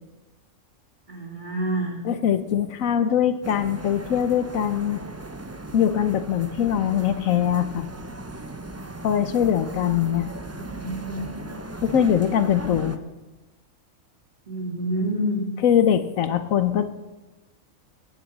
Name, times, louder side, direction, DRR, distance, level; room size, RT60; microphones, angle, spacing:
voice 1, 1.1-2.0 10.5-11.4 14.5-15.4, right 1 dB, 35° right, -3 dB, 2.3 m, -28 dB
voice 2, 2.0-5.0 5.7-7.9 9.0-10.3 11.8-13.0 15.6-16.9, left 9 dB, 85° left, 10 dB, 1.2 m, -22 dB
sound 1, 3.4-13.0, right 2 dB, 15° right, 0.5 m, -37 dB
18.0 x 8.0 x 7.2 m, 1.1 s
omnidirectional pair, 1.4 m